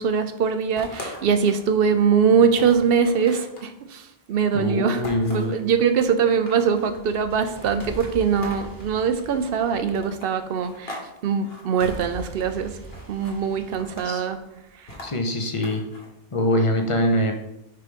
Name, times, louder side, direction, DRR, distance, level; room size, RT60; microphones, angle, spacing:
voice 1, 0.0-5.0 5.3-12.7 13.1-14.4, right 6 dB, 70° right, 10 dB, 0.8 m, -22 dB
sound 1, 0.8-1.7 2.1-2.2 2.5-3.7 5.0-5.6 6.2-6.9 7.6-8.9 9.9-11.1 11.3-11.9 12.9-13.4 13.7-14.2 14.9-16.1, left 2 dB, 70° left, 1.5 m, -40 dB
voice 2, 4.5-5.6 14.0-14.3 15.0-15.8 16.3-17.3, left 1 dB, 35° left, 4 dB, 0.8 m, -23 dB
sound 2, 6.6-10.7 11.8-14.7, right 2 dB, 20° right, 0.8 m, -41 dB
4.7 x 4.6 x 5.1 m, 0.86 s
omnidirectional pair, 1.0 m